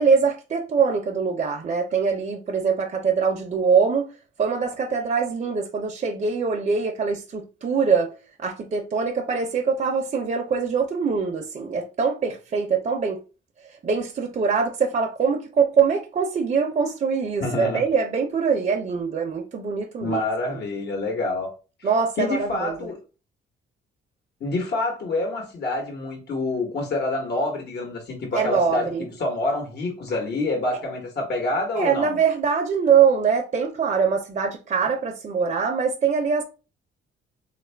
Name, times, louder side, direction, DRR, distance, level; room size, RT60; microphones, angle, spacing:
voice 1, 0.0-4.1 4.4-8.1 8.4-13.2 13.8-20.2 21.8-22.9 28.3-29.1 31.7-36.4, right 6 dB, 35° right, 0.6 m, -23 dB
voice 2, 17.4-17.8 20.0-21.5 21.8-21.9 22.2-23.0 24.4-32.2, left 2 dB, 55° left, 1.1 m, -27 dB
3.4 x 2.4 x 3.3 m
cardioid pair, 90°, 20 cm